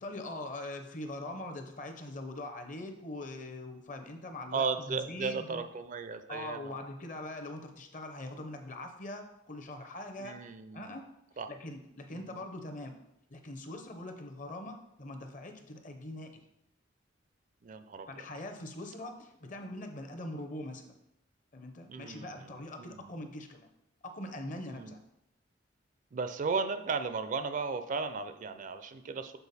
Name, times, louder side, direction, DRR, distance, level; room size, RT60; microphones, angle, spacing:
voice 1, 0.0-5.6 6.3-10.4 10.7-11.0 11.5-13.0 13.3-16.4 18.1-21.0 21.5-23.7 24.0-25.0, left 1 dB, 45° left, 5 dB, 0.8 m, -42 dB
voice 2, 4.5-6.8 10.2-11.0 11.4-11.5 12.1-12.4 17.6-18.2 21.9-23.1 24.7-24.9 26.1-29.4, right 4 dB, 40° right, 10 dB, 0.4 m, -36 dB
6.9 x 4.3 x 4.1 m, 0.82 s
head